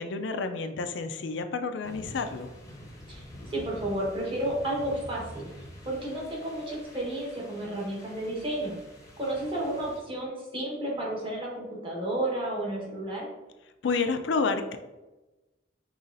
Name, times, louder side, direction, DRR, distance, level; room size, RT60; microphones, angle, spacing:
voice 1, 0.0-2.5 13.8-14.8, left 4 dB, 80° left, 8 dB, 0.4 m, -29 dB
sound 1, 1.8-10.0, equal, 20° left, 0.7 m, -47 dB
voice 2, 3.1-8.7 9.2-13.3, right 1 dB, 30° right, -3 dB, 1.2 m, -32 dB
5.5 x 3.0 x 2.6 m, 1.1 s
head